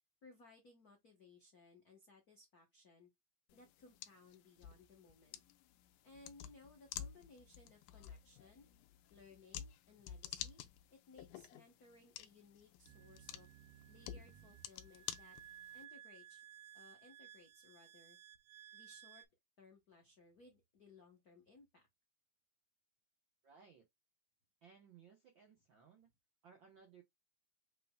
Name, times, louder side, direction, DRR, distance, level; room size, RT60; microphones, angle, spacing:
voice 1, 0.2-3.1 3.5-5.4 6.0-8.7 9.1-10.6 10.9-13.5 13.9-15.4 15.7-16.4 16.7-18.2 18.7-19.3 19.6-21.9, left 3 dB, 65° left, 0.9 m, -62 dB
sound 1, 3.5-15.8, left 11 dB, 85° left, 2.2 m, -51 dB
sound 2, 12.9-19.3, right 11 dB, 85° right, 2.1 m, -58 dB
voice 2, 23.4-23.9 24.6-26.1 26.4-27.0, right 6 dB, 70° right, 1.1 m, -62 dB
6.7 x 3.4 x 2.2 m
omnidirectional pair, 3.5 m